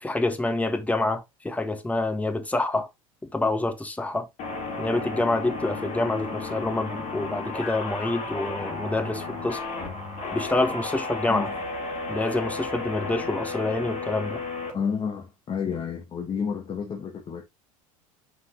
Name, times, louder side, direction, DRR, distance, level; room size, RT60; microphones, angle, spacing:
voice 1, 0.0-2.9 3.3-4.3 4.8-9.6 10.3-11.5 12.1-14.4, left 2 dB, 10° left, 1.3 m, -27 dB
sound 1, 4.4-14.7, left 3 dB, 45° left, 3.0 m, -33 dB
voice 2, 14.7-17.4, left 6 dB, 30° left, 1.5 m, -30 dB
5.9 x 5.1 x 3.1 m
hypercardioid pair, 80°, 18 cm